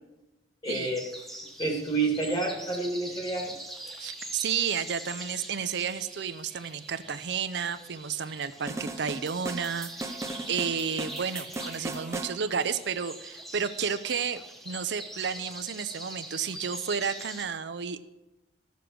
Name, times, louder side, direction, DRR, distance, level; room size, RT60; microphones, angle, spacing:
voice 1, 0.6-1.0 1.6-3.5, right 3 dB, 25° left, 1 dB, 2.3 m, -29 dB
sound 1, 0.6-17.5, right 1 dB, ahead, 1.2 m, -43 dB
voice 2, 4.0-18.0, right 6 dB, 65° right, 11 dB, 0.6 m, -32 dB
sound 2, 8.7-12.4, right 2 dB, 15° right, 0.7 m, -37 dB
14.0 x 6.9 x 6.2 m, 1.0 s
head